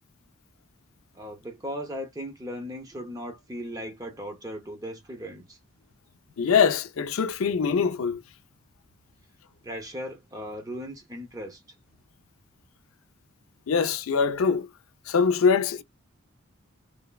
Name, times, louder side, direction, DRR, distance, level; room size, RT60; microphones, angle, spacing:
voice 1, 1.1-5.6 9.6-11.6, equal, 15° right, 0.6 m, -37 dB
voice 2, 6.4-8.2 13.7-14.7 15.1-15.8, left 6 dB, 85° left, 0.4 m, -23 dB
3.2 x 2.1 x 2.2 m
head